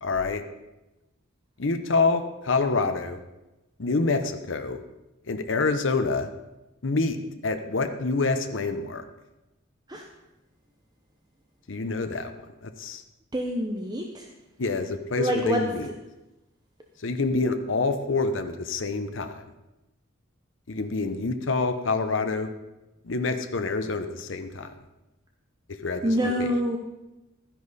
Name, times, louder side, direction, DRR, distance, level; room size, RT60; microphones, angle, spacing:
voice 1, 0.0-0.4 1.6-3.2 3.8-4.8 5.3-6.3 6.8-7.2 7.4-9.0 11.7-12.3 12.6-13.0 14.6-15.9 17.0-19.5 20.7-22.5 23.0-24.7 25.8-26.5, left 3 dB, 65° left, 7 dB, 0.8 m, -27 dB
voice 2, 13.3-14.3 15.2-15.6 26.0-26.8, equal, 20° right, 2 dB, 0.8 m, -26 dB
13.0 x 10.0 x 4.1 m, 0.98 s
head